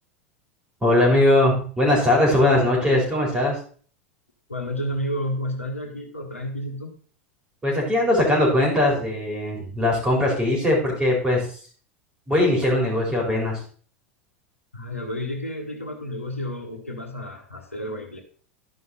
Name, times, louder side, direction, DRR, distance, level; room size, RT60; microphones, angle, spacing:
voice 1, 0.8-3.6 7.6-11.4 12.3-13.6, left 1 dB, 15° right, -2 dB, 4.4 m, -20 dB
voice 2, 4.5-7.0 14.7-18.2, equal, 85° left, 4 dB, 1.3 m, -31 dB
11.5 x 5.5 x 4.0 m, 0.43 s
figure-of-eight pair, 85°, 7 cm